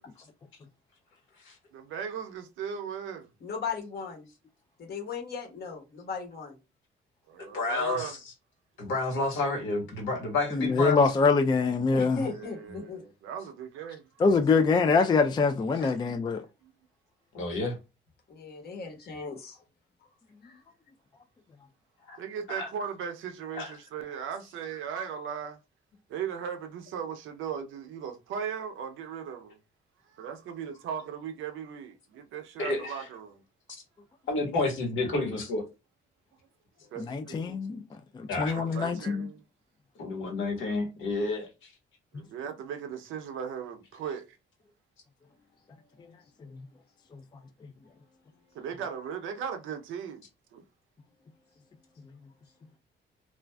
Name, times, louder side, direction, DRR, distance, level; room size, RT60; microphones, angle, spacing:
voice 1, 1.7-3.3 7.3-8.1 12.2-14.1 22.2-25.6 26.1-29.6 30.1-33.4 36.9-37.6 38.5-39.4 42.1-44.4 48.5-50.2 50.5-50.6, right 7 dB, 80° right, 0.6 m, -37 dB
voice 2, 3.4-4.3 4.8-6.6 11.9-13.0 15.7-15.9 18.3-19.6 20.4-20.6, left 5 dB, 55° left, 1.1 m, -37 dB
voice 3, 7.4-8.2 8.8-11.0 12.7-12.8 17.3-17.8 22.1-22.2 22.5-22.7 23.5-23.7 32.6-33.1 34.3-35.6 38.3-38.6 40.0-41.7, left 3 dB, 75° left, 1.3 m, -30 dB
voice 4, 10.5-12.3 14.2-16.4 37.0-37.8 38.1-39.3 47.1-47.2, left 4 dB, 20° left, 0.3 m, -24 dB
3.1 x 2.5 x 2.2 m
cardioid pair, 90°, 20 cm